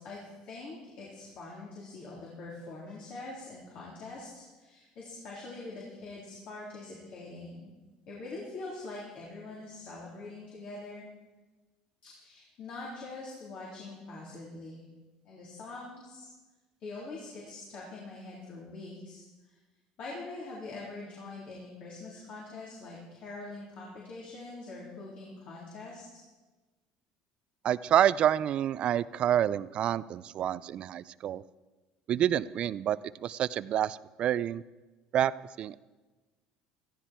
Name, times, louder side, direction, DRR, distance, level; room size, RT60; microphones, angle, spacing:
voice 1, 0.0-7.7 8.1-11.1 12.0-14.8 15.2-16.3 16.8-19.6 20.0-26.0, left 3 dB, 55° left, -4 dB, 3.7 m, -44 dB
voice 2, 27.6-31.4 32.1-34.6 35.1-35.3 35.6-35.8, right 10 dB, 50° right, 18 dB, 0.4 m, -28 dB
15.0 x 15.0 x 4.5 m, 1.2 s
cardioid pair, 115°, 2 cm